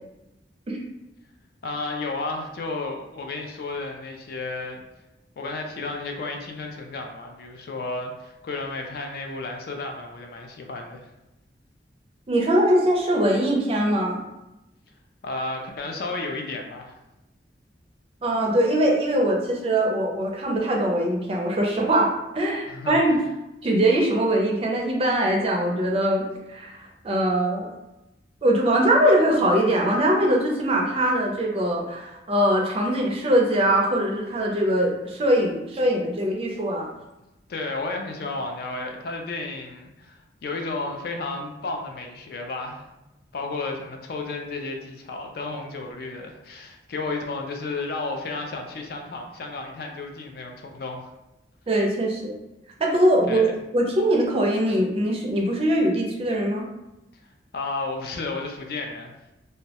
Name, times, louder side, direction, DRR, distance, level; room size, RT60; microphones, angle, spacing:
voice 1, 1.6-4.8 5.4-11.1 15.2-17.0 22.7-23.0 37.5-42.8 43.3-51.1 53.3-53.5 57.5-59.1, left 3 dB, 60° left, 3 dB, 0.3 m, -32 dB
voice 2, 12.3-14.2 18.2-23.2 23.6-26.7 27.0-27.7 28.4-36.9 51.7-52.3 52.8-53.5 53.7-56.6, right 1 dB, 35° right, 0 dB, 0.4 m, -22 dB
2.2 x 2.0 x 2.8 m, 0.95 s
head